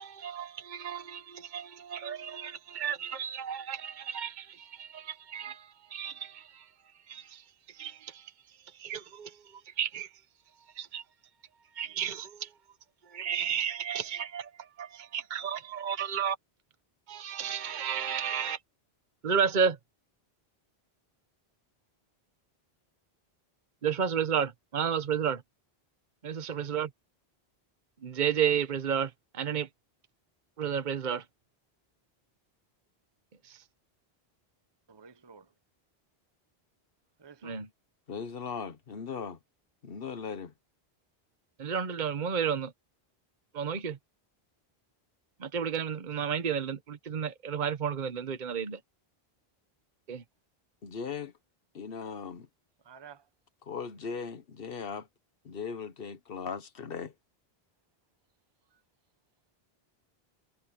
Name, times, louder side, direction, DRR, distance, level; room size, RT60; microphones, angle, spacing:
voice 1, 0.0-6.7 7.1-10.1 10.7-11.0 11.7-12.5 13.0-16.4 17.1-18.6 19.2-19.8 23.8-25.4 26.2-26.9 28.0-29.7 30.6-31.2 33.4-33.6 37.4-37.7 41.6-42.7 43.5-44.0 45.4-48.8 50.1-50.2, right 7 dB, 50° right, 1.1 m, -32 dB
voice 2, 34.9-35.5 37.2-37.6 52.8-53.3 58.7-58.8, right 6 dB, 25° right, 0.8 m, -51 dB
voice 3, 38.1-39.4 39.8-40.5 50.8-51.3 51.7-52.5 53.6-55.1 55.4-57.1, left 6 dB, 65° left, 1.2 m, -38 dB
omnidirectional pair, 1.0 m